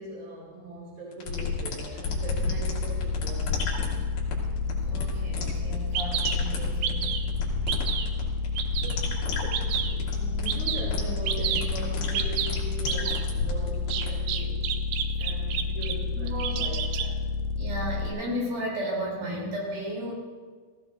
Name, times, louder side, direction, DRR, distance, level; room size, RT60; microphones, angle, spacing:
voice 1, 0.0-3.8 8.8-14.7 15.2-17.2, right 2 dB, 35° right, -4 dB, 2.7 m, -40 dB
sound 1, 1.1-14.1, left 4 dB, 60° left, 3.3 m, -33 dB
sound 2, 2.0-18.1, left 4 dB, 80° left, 2.3 m, -30 dB
voice 2, 4.8-7.1 9.6-9.7 16.1-16.6 17.5-20.1, equal, 60° right, -4 dB, 5.0 m, -34 dB
Bird vocalization bird call bird song, 5.5-5.6 5.9-6.3 6.8-7.3 7.7-8.1 8.6-9.0 9.5-9.9 10.5-10.8 11.3-11.6 12.1-12.5 12.9-13.2 13.9-15.9 16.3-17.1, right 10 dB, 85° right, 2.3 m, -29 dB
16.5 x 15.5 x 2.6 m, 1.5 s
omnidirectional pair, 5.0 m